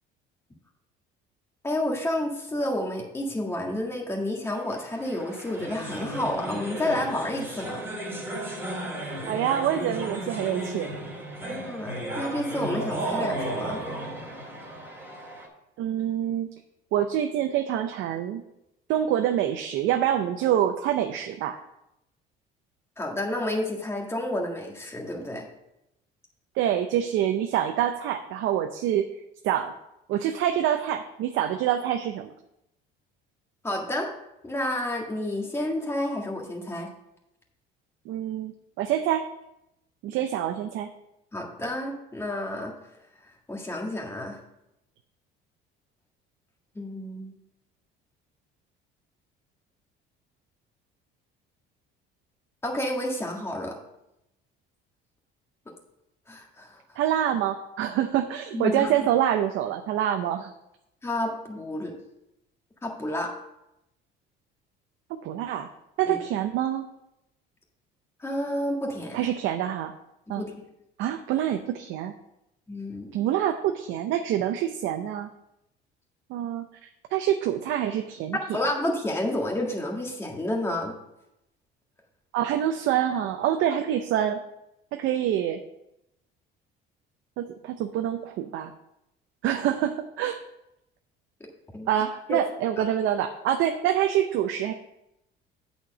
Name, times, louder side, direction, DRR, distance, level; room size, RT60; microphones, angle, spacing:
voice 1, 1.6-7.8 11.4-13.8 23.0-25.4 33.6-34.1 34.4-36.9 41.3-42.7 43.5-44.4 46.7-47.3 52.6-53.7 56.3-56.7 58.5-58.9 61.0-61.9 62.8-63.3 66.1-66.2 68.2-69.3 70.4-70.5 72.7-73.1 78.3-80.9 91.7-91.9 92.3-92.4 92.8-92.9, left 1 dB, 10° left, 0 dB, 1.6 m, -30 dB
sound 1, 4.7-15.5, right 1 dB, 10° right, 2.2 m, -34 dB
voice 2, 9.3-10.9 15.8-16.5 16.9-18.4 18.9-21.6 26.6-29.1 29.4-29.7 30.1-32.3 38.1-39.3 40.0-40.9 57.0-60.5 65.2-65.7 66.0-66.9 69.1-69.9 70.3-70.4 71.0-72.1 73.1-75.3 76.3-78.6 82.3-84.4 84.9-85.6 87.4-88.7 89.4-90.4 91.9-94.7, right 10 dB, 70° right, 6 dB, 0.6 m, -26 dB
8.3 x 4.5 x 6.6 m, 0.86 s
cardioid pair, 130°, 21 cm